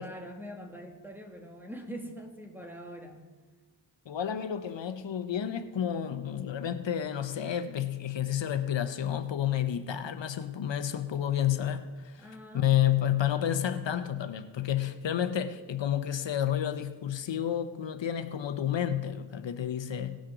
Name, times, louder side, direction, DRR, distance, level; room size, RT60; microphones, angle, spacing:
voice 1, 0.0-3.3 12.2-12.7, equal, 5° right, 2 dB, 1.9 m, -43 dB
voice 2, 4.1-12.3 12.5-20.2, left 10 dB, 85° left, 10 dB, 0.7 m, -30 dB
18.0 x 6.3 x 4.8 m, 1.3 s
wide cardioid pair, 55°, 43 cm